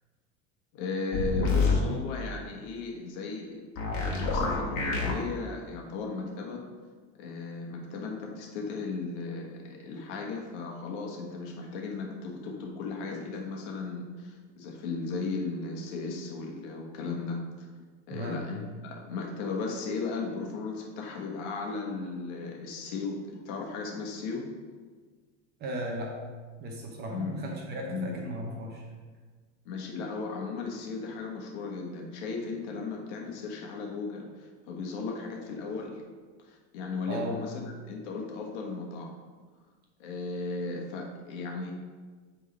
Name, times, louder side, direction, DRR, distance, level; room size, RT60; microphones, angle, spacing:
voice 1, 0.7-6.6 7.2-17.4 18.1-24.5 27.1-27.4 27.9-28.2 29.6-36.0 36.4-39.1 40.0-41.7, left 4 dB, 70° left, 0 dB, 1.5 m, -36 dB
sound 1, 1.1-1.8 3.8-5.1, left 4 dB, 40° left, 1.6 m, -26 dB
voice 2, 18.1-18.4 25.6-26.1 26.6-28.9 37.1-37.4, right 1 dB, 30° right, 0 dB, 0.8 m, -36 dB
8.2 x 3.9 x 5.2 m, 1.5 s
supercardioid pair, 165°, 36 cm